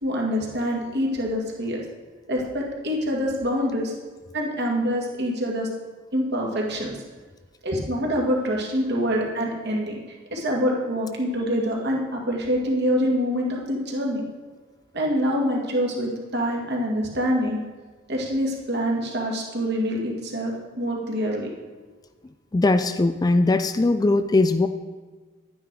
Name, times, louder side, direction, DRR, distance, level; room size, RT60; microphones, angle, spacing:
voice 1, 0.0-1.8 2.3-3.9 4.3-5.7 6.1-7.0 7.6-9.9 10.3-14.2 14.9-17.6 18.1-21.5, equal, 55° right, -1 dB, 2.1 m, -25 dB
voice 2, 22.5-24.7, left 2 dB, 20° left, 10 dB, 0.3 m, -20 dB
10.5 x 9.4 x 4.7 m, 1.4 s
head